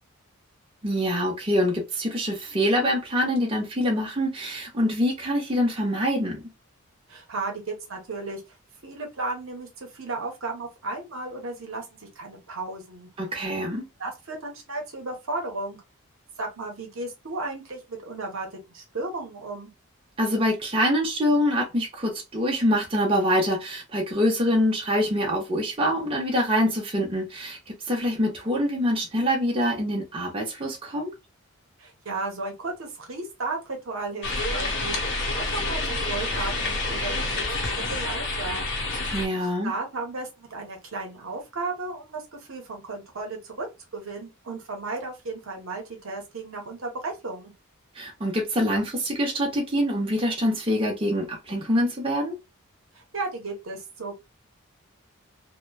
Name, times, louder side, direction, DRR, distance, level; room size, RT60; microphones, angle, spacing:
voice 1, 0.8-6.4 13.2-13.9 20.2-31.1 39.1-39.7 47.9-52.4, equal, 25° right, 0.7 m, -25 dB
voice 2, 7.1-8.4 8.8-13.1 14.0-15.8 16.4-19.7 31.8-38.8 39.6-43.7 43.9-47.5 52.9-54.2, right 3 dB, 65° right, 0.9 m, -34 dB
sound 1, 34.2-39.3, left 2 dB, 55° left, 0.8 m, -28 dB
2.9 x 2.2 x 2.2 m
head